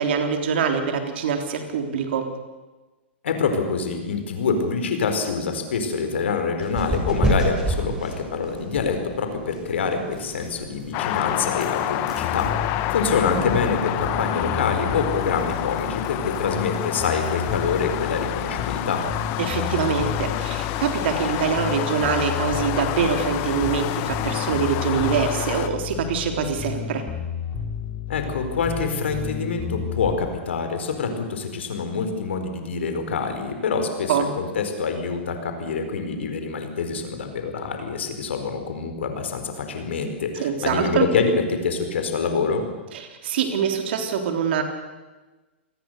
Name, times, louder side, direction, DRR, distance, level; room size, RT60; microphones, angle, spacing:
voice 1, 0.0-2.3 19.4-27.1 34.1-34.3 40.4-41.1 42.9-44.6, right 6 dB, 60° right, 5 dB, 3.7 m, -24 dB
voice 2, 3.2-12.5 12.9-19.0 28.1-42.6, left 5 dB, 70° left, 6 dB, 4.5 m, -26 dB
sound 1, 6.6-20.7, right 1 dB, 10° right, 7.4 m, -33 dB
sound 2, 10.9-25.7, left 14 dB, 45° left, 1.5 m, -28 dB
sound 3, 12.2-30.1, left 8 dB, 25° left, 5.2 m, -32 dB
27.0 x 20.0 x 6.8 m, 1.2 s
hypercardioid pair, 110°, 6 cm